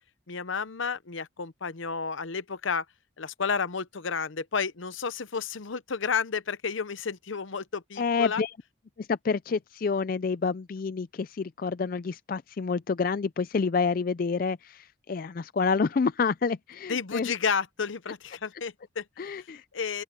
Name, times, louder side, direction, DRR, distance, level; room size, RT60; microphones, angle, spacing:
voice 1, 0.3-2.8 3.2-8.4 16.9-19.5 19.7-20.0, left 5 dB, 75° left, 0.8 m, -31 dB
voice 2, 8.0-8.5 9.0-17.3 19.2-19.6, left 5 dB, 45° left, 0.4 m, -28 dB
open air
head